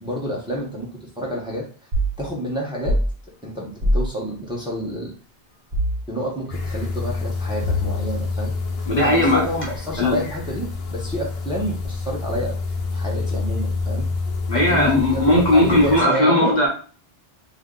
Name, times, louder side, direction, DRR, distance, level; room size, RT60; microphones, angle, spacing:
voice 1, 0.0-1.7 2.2-3.0 3.4-5.1 6.1-8.5 8.9-12.6 12.9-14.1 14.5-16.5, equal, 5° right, -3 dB, 0.9 m, -29 dB
sound 1, 1.9-2.2 2.8-3.1 3.8-4.1 5.7-6.0 7.6-8.1, equal, 70° right, 1.2 m, -21 dB
sound 2, 6.5-16.0, left 3 dB, 70° left, 1.0 m, -28 dB
voice 2, 8.9-9.4 10.0-10.2 14.5-16.7, left 1 dB, 50° left, -2 dB, 0.9 m, -17 dB
2.9 x 2.7 x 3.7 m, 0.40 s
omnidirectional pair, 1.0 m